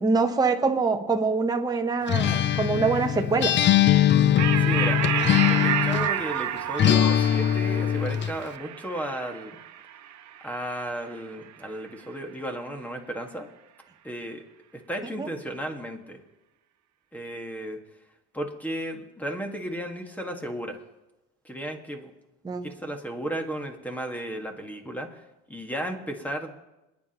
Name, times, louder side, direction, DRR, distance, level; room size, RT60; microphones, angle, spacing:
voice 1, 0.0-3.5 15.2-15.3 22.4-22.8, right 4 dB, 10° right, 4 dB, 0.9 m, -24 dB
Acoustic guitar, 2.1-6.2 6.8-8.4, left 11 dB, 35° left, 0.4 m, -21 dB
sound 1, 4.4-11.3, right 11 dB, 60° right, 1.0 m, -30 dB
voice 2, 4.6-9.6 10.4-13.5 14.0-14.4 14.7-16.2 17.1-17.8 18.3-20.8 21.4-22.1 22.6-26.6, right 1 dB, 5° left, 4 dB, 1.6 m, -34 dB
27.5 x 9.6 x 3.0 m, 1.0 s
cardioid pair, 120°, 32 cm